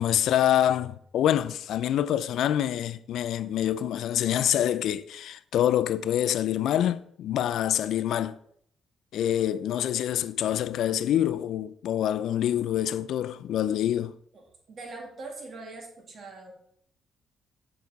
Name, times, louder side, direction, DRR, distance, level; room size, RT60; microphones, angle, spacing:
voice 1, 0.0-8.3 9.1-14.1, left 11 dB, 75° left, 0.4 m, -26 dB
voice 2, 14.3-16.5, right 3 dB, 50° right, 2.1 m, -42 dB
7.2 x 5.8 x 4.0 m
cardioid pair, 90°, 0 cm